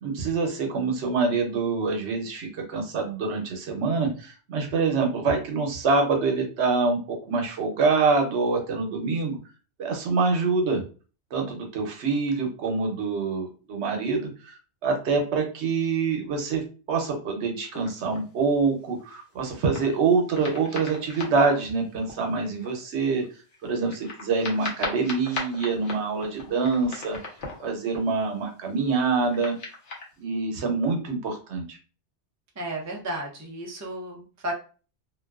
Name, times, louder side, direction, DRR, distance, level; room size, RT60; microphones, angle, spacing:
voice 1, 0.0-9.4 9.8-10.8 11.3-14.6 14.8-16.6 16.9-23.2 23.6-27.2 27.6-29.6 30.2-31.8, right 4 dB, 75° right, 3 dB, 1.0 m, -25 dB
sound 1, 17.7-18.2 18.9-20.0 20.3-22.8 23.2-23.3 23.5-28.4 28.9-30.1, left 3 dB, 55° left, 0.8 m, -38 dB
voice 2, 32.6-34.5, right 1 dB, 25° right, 1 dB, 0.3 m, -33 dB
2.5 x 2.2 x 2.3 m, 0.36 s
omnidirectional pair, 1.2 m